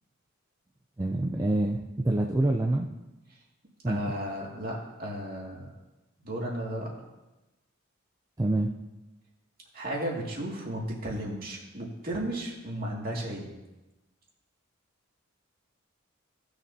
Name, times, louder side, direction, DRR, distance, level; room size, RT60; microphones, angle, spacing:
voice 1, 1.0-2.9 3.8-4.0 8.4-8.7, right 2 dB, 15° right, 1 dB, 0.5 m, -26 dB
voice 2, 3.9-5.7 6.2-6.9 9.7-13.5, right 1 dB, 45° right, -3 dB, 2.4 m, -34 dB
18.0 x 6.7 x 2.8 m, 1.0 s
head